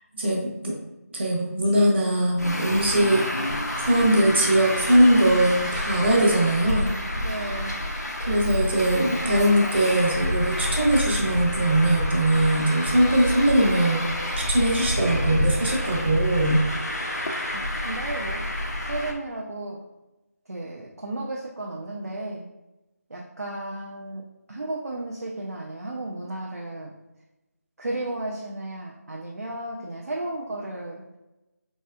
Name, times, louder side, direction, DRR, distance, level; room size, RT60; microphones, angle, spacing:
voice 1, 0.1-0.7 1.1-3.2 3.8-7.0 7.2-7.6 8.2-14.2 14.5-16.6, right 1 dB, 45° right, -1 dB, 1.2 m, -21 dB
Traffic noise roadway noise, 2.4-19.1, left 1 dB, 90° left, 1.0 m, -28 dB
voice 2, 7.2-7.8 17.5-19.8 20.5-22.5 23.1-26.9 27.8-31.0, right 2 dB, 65° right, -2 dB, 0.7 m, -34 dB
4.5 x 4.2 x 2.5 m, 0.99 s
figure-of-eight pair, 165°, 9 cm